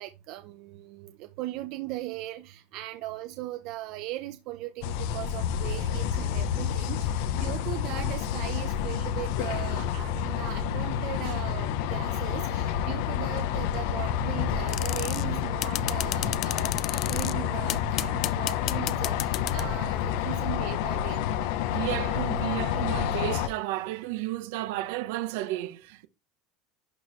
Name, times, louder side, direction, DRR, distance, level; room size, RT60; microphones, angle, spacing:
voice 1, 0.0-21.2, right 16 dB, 45° right, 0.7 m, -38 dB
sound 1, 4.8-23.5, left 9 dB, 55° left, 0.9 m, -29 dB
sound 2, 14.7-15.2 15.6-17.3 17.7-19.7, left 15 dB, 35° left, 0.4 m, -32 dB
voice 2, 21.7-26.1, right 16 dB, 65° right, 1.0 m, -32 dB
11.5 x 4.7 x 3.2 m
cardioid pair, 175°, 0 cm